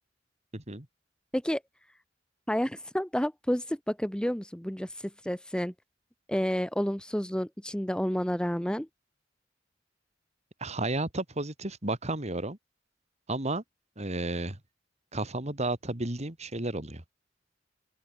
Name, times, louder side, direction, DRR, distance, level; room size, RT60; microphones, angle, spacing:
voice 1, 0.5-0.9 10.6-12.6 13.3-13.6 14.0-14.6 15.1-17.0, right 2 dB, 35° right, 2.6 m, -32 dB
voice 2, 2.5-5.7 6.3-8.9, equal, 5° left, 1.1 m, -30 dB
open air
head